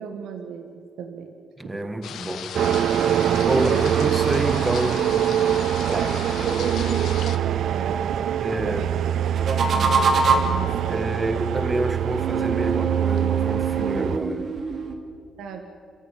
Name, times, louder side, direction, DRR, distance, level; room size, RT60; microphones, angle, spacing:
voice 1, 0.0-1.3 1.7-1.8 3.5-3.9 5.8-9.0 9.3-11.2 15.4-15.6, right 7 dB, 85° right, 1.7 m, -34 dB
voice 2, 1.6-2.6 3.4-5.1 5.9-6.0 8.4-8.8 10.9-14.5, right 1 dB, 15° right, 1.6 m, -27 dB
sound 1, 2.0-7.4, left 8 dB, 75° left, 1.5 m, -36 dB
sound 2, 2.5-14.2, right 10 dB, 70° right, 0.5 m, -24 dB
sound 3, 9.2-10.7 12.1-14.9, right 4 dB, 50° right, 2.9 m, -24 dB
29.5 x 13.5 x 9.2 m
cardioid pair, 115°, 0 cm